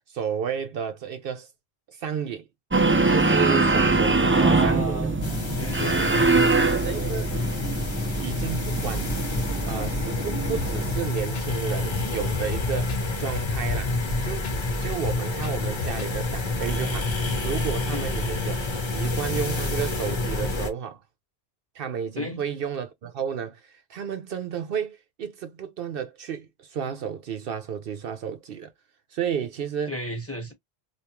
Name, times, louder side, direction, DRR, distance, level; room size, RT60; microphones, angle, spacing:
voice 1, 0.1-1.5 1.9-2.4 3.0-5.1 6.5-7.3 8.2-9.1 9.7-12.9 13.2-14.0 14.2-14.5 14.8-17.2 17.4-21.0 21.7-28.7 29.1-29.9, right 8 dB, 65° right, 0.8 m, -32 dB
sound 1, 2.7-10.9, right 3 dB, 20° right, 0.3 m, -23 dB
voice 2, 4.3-5.2 5.6-6.5 17.8-18.1 22.2-22.4 29.9-30.5, right 1 dB, 15° left, 1.2 m, -33 dB
sound 2, 5.2-20.7, left 2 dB, 30° left, 0.8 m, -28 dB
sound 3, 10.6-11.0 11.3-11.5 11.7-14.6 14.9-16.1 16.4-16.5, left 4 dB, 80° left, 1.0 m, -34 dB
3.5 x 2.5 x 2.9 m
omnidirectional pair, 1.0 m